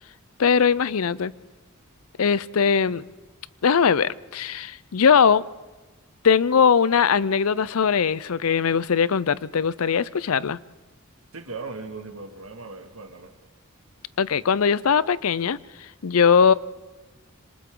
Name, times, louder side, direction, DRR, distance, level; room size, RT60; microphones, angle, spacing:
voice 1, 0.4-1.3 2.2-3.0 3.6-5.4 6.2-10.6 14.2-15.6 16.0-16.5, left 6 dB, 85° left, 0.6 m, -20 dB
voice 2, 11.3-13.4, right 3 dB, 80° right, 2.1 m, -38 dB
27.0 x 26.5 x 3.8 m
head